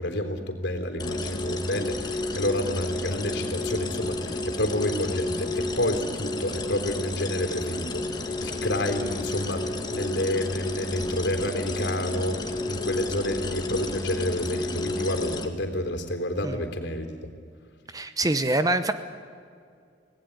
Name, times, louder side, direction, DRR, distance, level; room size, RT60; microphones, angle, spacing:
voice 1, 0.0-17.3, left 1 dB, 60° left, 6 dB, 3.6 m, -29 dB
sound 1, 1.0-15.5, left 2 dB, 20° left, 1.9 m, -31 dB
voice 2, 17.9-18.9, right 2 dB, 20° right, 10 dB, 0.9 m, -24 dB
26.0 x 18.5 x 9.7 m, 2.3 s
head